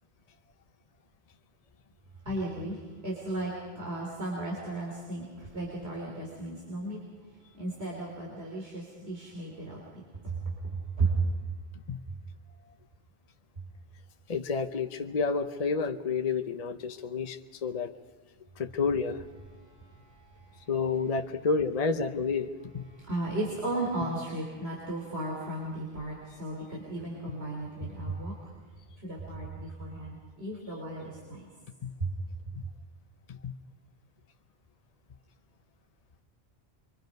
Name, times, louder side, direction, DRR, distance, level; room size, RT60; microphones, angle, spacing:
voice 1, 2.3-7.0 7.5-11.2 19.5-20.7 22.9-28.5 29.0-31.5 32.0-32.1, right 2 dB, 85° right, 3.7 m, -35 dB
voice 2, 14.3-17.9 18.6-19.2 20.7-22.8 31.8-31.9 32.5-32.6 33.3-33.5, left 5 dB, 40° left, 0.8 m, -30 dB
25.0 x 23.5 x 5.3 m
omnidirectional pair, 1.0 m